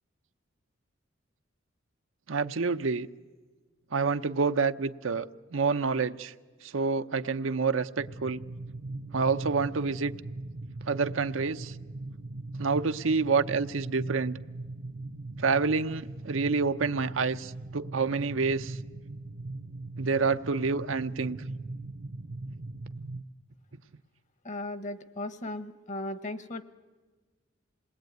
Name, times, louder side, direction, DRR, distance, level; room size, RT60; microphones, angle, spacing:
voice 1, 2.3-3.1 3.9-6.3 6.6-8.4 9.1-10.1 10.9-11.8 12.6-14.4 15.4-18.8 20.0-21.4, right 4 dB, 90° right, 10 dB, 0.8 m, -28 dB
sound 1, 8.0-23.2, right 2 dB, 50° right, 0.7 m, -40 dB
voice 2, 24.4-26.6, left 2 dB, 40° left, 13 dB, 1.1 m, -36 dB
27.5 x 20.0 x 9.3 m, 1.4 s
head